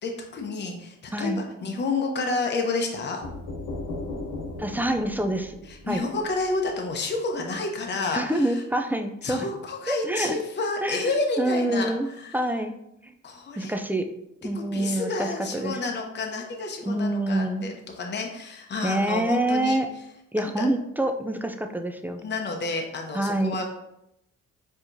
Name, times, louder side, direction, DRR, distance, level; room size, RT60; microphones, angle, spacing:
voice 1, 0.0-3.2 5.6-8.6 9.2-11.9 12.2-12.4 13.2-13.7 14.5-19.8 20.6-20.7 22.2-23.7, left 3 dB, 35° left, 2 dB, 0.8 m, -30 dB
sound 1, 3.2-7.0, left 2 dB, 80° left, 1.1 m, -37 dB
voice 2, 4.6-5.5 5.9-6.0 8.1-9.5 9.9-10.4 10.8-11.1 11.4-12.1 12.3-12.7 13.0-13.1 13.6-14.1 14.4-15.8 16.8-17.7 18.8-19.9 20.3-22.2 23.1-23.6, right 1 dB, 5° right, 5 dB, 0.3 m, -26 dB
4.5 x 3.6 x 2.6 m, 0.81 s
cardioid pair, 90°, 30 cm